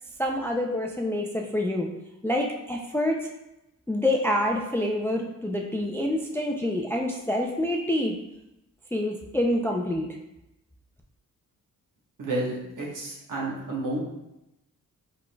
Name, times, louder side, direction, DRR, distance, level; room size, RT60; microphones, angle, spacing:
voice 1, 0.2-1.9 2.2-3.3 3.9-8.1 8.9-10.1, left 1 dB, 5° left, 1 dB, 0.3 m, -27 dB
voice 2, 12.2-14.0, right 2 dB, 65° right, -3 dB, 1.3 m, -31 dB
4.6 x 4.0 x 2.2 m, 0.91 s
wide cardioid pair, 105°, 35 cm